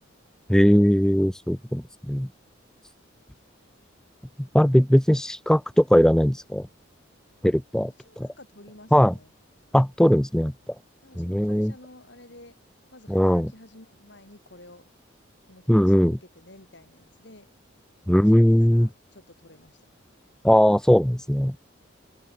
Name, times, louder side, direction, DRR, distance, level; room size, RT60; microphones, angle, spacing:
voice 1, 0.5-2.3 4.5-6.7 7.4-8.3 8.9-9.1 9.7-10.5 11.2-11.7 13.1-13.5 15.7-16.2 18.1-18.9 20.4-21.6, equal, 5° left, 0.4 m, -19 dB
voice 2, 8.0-9.3 11.0-12.6 12.9-14.9 15.5-17.5 18.1-19.8, left 1 dB, 60° left, 4.4 m, -50 dB
head